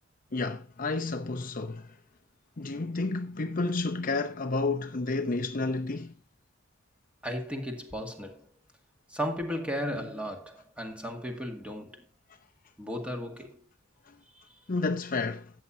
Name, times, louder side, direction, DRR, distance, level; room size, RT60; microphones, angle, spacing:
voice 1, 0.3-1.9 2.6-6.1 14.1-14.2 14.7-15.5, left 3 dB, 45° left, 0.7 m, -31 dB
voice 2, 7.2-8.5 9.1-12.0 12.8-13.6 14.3-14.4, equal, 5° right, 2.0 m, -35 dB
13.5 x 8.7 x 2.8 m
head